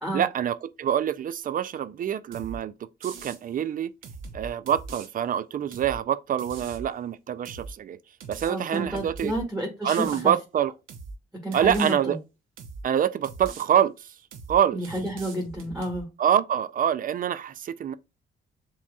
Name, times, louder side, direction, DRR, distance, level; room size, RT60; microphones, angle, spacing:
voice 1, 0.1-2.7 3.0-3.9 4.3-8.0 8.3-9.3 9.8-10.7 11.5-12.2 12.8-14.1 14.5-14.8 16.2-17.9, right 9 dB, 45° right, 0.4 m, -25 dB
sound 1, 2.3-2.6 3.0-3.4 4.0-5.1 5.7-6.0 6.4-6.9 7.4-7.7 8.2-9.4 9.9-10.3 10.9-11.2 11.5-11.9 12.6-12.8 13.2-13.7 14.3-14.6 14.8-16.0, right 4 dB, 80° right, 0.8 m, -41 dB
voice 2, 8.5-10.3 11.4-12.2 14.7-16.1, right 1 dB, 5° right, 1.6 m, -30 dB
7.3 x 2.8 x 2.3 m
cardioid pair, 90°, 20 cm